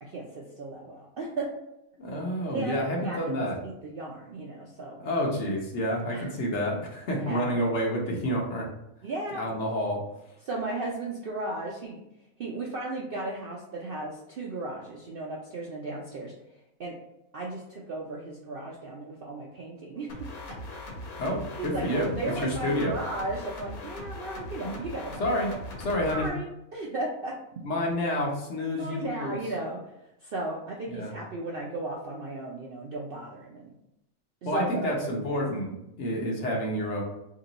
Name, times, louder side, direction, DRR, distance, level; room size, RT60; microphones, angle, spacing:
voice 1, 0.0-1.5 2.5-5.0 6.1-6.3 7.2-7.6 9.0-9.4 10.4-12.0 12.4-16.3 16.8-16.9 17.3-20.3 21.2-21.3 21.6-25.3 26.1-27.4 28.7-29.8 30.2-33.7 34.4-34.9 35.2-35.4, right 2 dB, 60° right, -2 dB, 0.6 m, -35 dB
voice 2, 2.0-3.6 5.0-8.7 9.4-10.0 21.2-22.1 22.4-22.9 24.6-24.8 25.2-25.5 25.8-26.3 27.6-29.4 30.9-31.1 34.4-37.0, equal, 55° left, -1 dB, 1.1 m, -29 dB
sound 1, 20.1-26.3, left 1 dB, 85° left, 1.3 m, -40 dB
3.0 x 2.9 x 3.9 m, 0.85 s
omnidirectional pair, 1.5 m